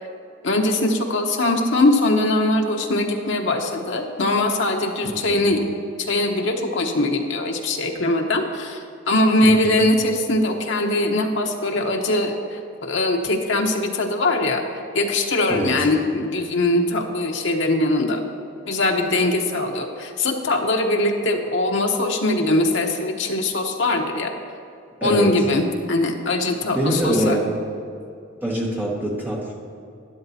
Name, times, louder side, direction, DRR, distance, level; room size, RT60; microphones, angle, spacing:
voice 1, 0.4-5.6 6.0-14.6 14.9-18.2 18.7-24.3 25.0-27.4, left 2 dB, 60° left, 2 dB, 0.9 m, -21 dB
voice 2, 5.0-5.4 9.4-9.9 15.5-15.8 25.0-25.3 26.7-27.5 28.4-29.5, right 1 dB, 10° right, -4 dB, 1.5 m, -24 dB
12.5 x 10.0 x 2.8 m, 2.5 s
head